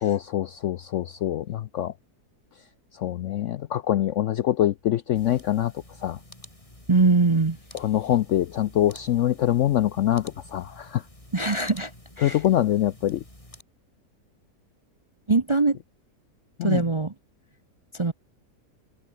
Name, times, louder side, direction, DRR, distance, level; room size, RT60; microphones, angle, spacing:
voice 1, 0.0-1.9 3.0-5.7 6.0-6.2 7.7-11.0 12.2-13.2 16.6-16.8, left 12 dB, 70° left, 0.7 m, -24 dB
sound 1, 5.1-13.6, left 1 dB, 20° left, 5.4 m, -49 dB
voice 2, 6.9-7.6 11.3-11.9 12.2-12.4 15.3-15.8 16.6-17.1 18.0-18.1, right 3 dB, 25° right, 0.6 m, -21 dB
omnidirectional pair, 1.7 m